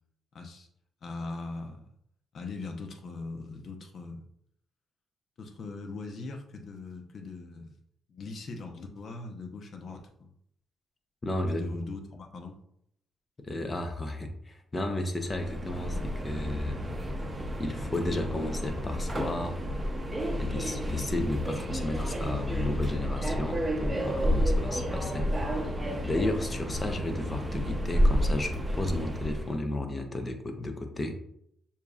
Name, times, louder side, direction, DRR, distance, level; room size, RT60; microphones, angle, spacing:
voice 1, 0.3-0.7 1.0-1.8 2.3-4.2 5.4-7.8 8.1-10.3 11.5-12.6, left 3 dB, 55° left, 4 dB, 0.8 m, -40 dB
voice 2, 11.2-11.6 13.4-16.8 17.6-19.6 20.4-25.6 26.0-31.2, left 2 dB, 25° left, 5 dB, 0.7 m, -33 dB
Subway metro underground, 15.2-29.5, equal, 15° right, 0.7 m, -30 dB
6.6 x 2.7 x 2.4 m, 0.71 s
cardioid pair, 90°, 0 cm